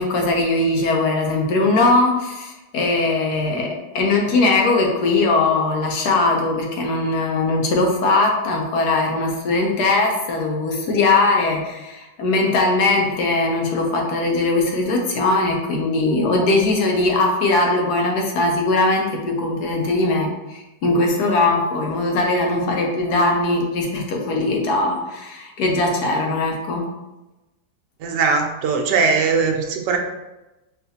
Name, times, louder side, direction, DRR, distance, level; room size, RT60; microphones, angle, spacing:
voice 1, 0.0-26.8, left 2 dB, 70° left, 0 dB, 1.2 m, -20 dB
voice 2, 28.0-30.0, right 5 dB, 80° right, 4 dB, 1.2 m, -20 dB
5.5 x 2.5 x 2.7 m, 1.0 s
omnidirectional pair, 1.9 m